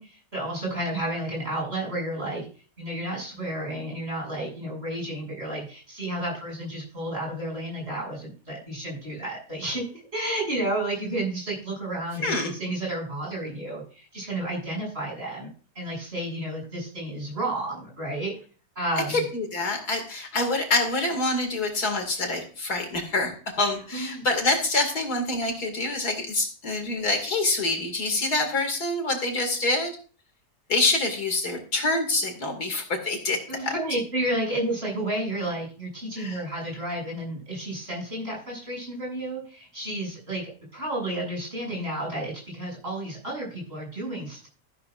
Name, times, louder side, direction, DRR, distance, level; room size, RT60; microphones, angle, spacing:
voice 1, 0.0-2.5 2.8-15.5 15.7-18.3 18.8-19.2 23.9-24.2 33.5-44.5, right 1 dB, 35° right, -3 dB, 7.6 m, -31 dB
voice 2, 12.2-12.5 19.1-29.9 30.7-33.7 36.2-36.4, left 2 dB, 65° left, 4 dB, 2.9 m, -26 dB
14.0 x 12.5 x 2.5 m, 0.39 s
omnidirectional pair, 1.8 m